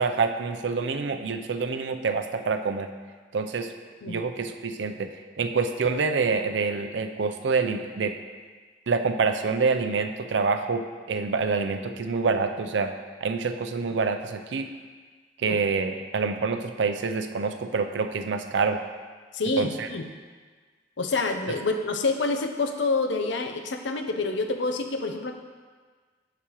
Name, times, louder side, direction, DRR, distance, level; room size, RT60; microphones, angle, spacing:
voice 1, 0.0-2.9 3.3-3.7 4.1-5.1 5.4-8.1 8.9-12.9 13.2-14.7 15.4-18.8 19.6-19.9, right 4 dB, 75° right, 7 dB, 0.5 m, -26 dB
voice 2, 19.3-20.0 21.0-25.3, left 3 dB, 85° left, 5 dB, 0.6 m, -27 dB
8.4 x 5.9 x 3.0 m, 1.5 s
head